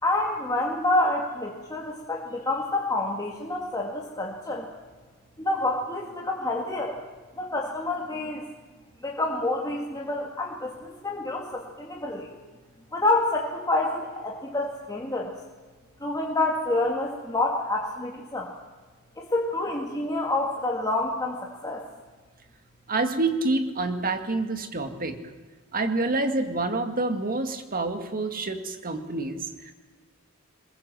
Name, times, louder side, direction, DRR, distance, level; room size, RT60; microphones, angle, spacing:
voice 1, 0.0-4.7 5.4-7.0 7.4-8.4 9.0-12.3 12.9-15.3 16.0-18.5 19.2-21.8, left 2 dB, 15° left, -1 dB, 2.1 m, -28 dB
voice 2, 22.9-25.2 25.7-29.7, right 2 dB, 40° right, 7 dB, 2.1 m, -27 dB
22.5 x 21.0 x 7.7 m, 1.4 s
head